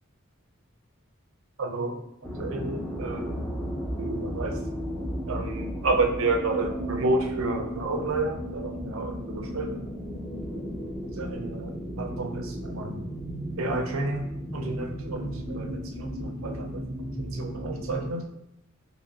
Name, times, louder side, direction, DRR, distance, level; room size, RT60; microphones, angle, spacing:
voice 1, 1.6-2.0 2.4-3.4 4.0-4.6 5.0-9.8 11.2-13.1 13.6-16.9 17.2-18.3, right 2 dB, 70° right, 4 dB, 0.5 m, -30 dB
sound 1, 2.2-18.1, equal, 5° left, 0.6 m, -34 dB
3.8 x 2.8 x 2.7 m, 0.80 s
head